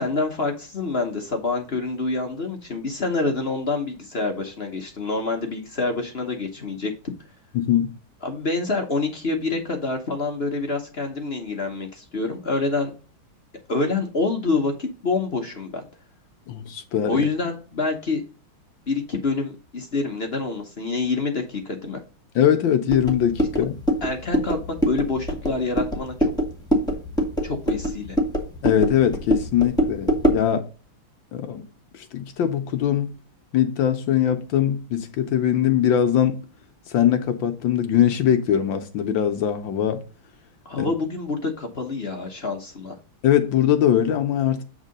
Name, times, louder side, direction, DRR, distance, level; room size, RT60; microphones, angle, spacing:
voice 1, 0.0-6.9 8.2-12.9 13.7-15.8 17.1-18.2 18.9-22.0 24.0-26.3 27.4-28.2 40.6-43.0, left 3 dB, 40° left, 0.9 m, -27 dB
voice 2, 7.5-7.9 16.5-17.3 22.3-23.8 28.6-30.7 31.3-31.6 31.9-33.2 33.5-36.4 36.9-40.0 40.8-40.9 43.2-44.6, left 10 dB, 70° left, 1.4 m, -21 dB
sound 1, 22.9-30.5, equal, ahead, 1.6 m, -24 dB
8.1 x 3.7 x 5.2 m
omnidirectional pair, 2.4 m